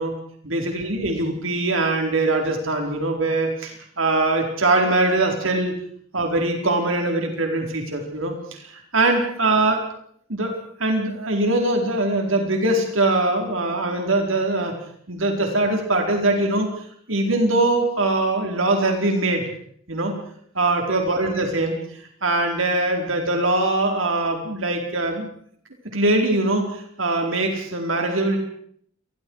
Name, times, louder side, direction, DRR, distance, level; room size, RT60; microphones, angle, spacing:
voice 1, 0.5-5.7 6.1-9.9 10.3-10.5 10.8-14.7 15.1-16.7 17.1-19.4 19.9-20.1 20.5-21.8 22.2-25.3 25.9-28.4, right 2 dB, 80° right, 2 dB, 4.4 m, -22 dB
28.5 x 22.0 x 4.8 m, 0.63 s
head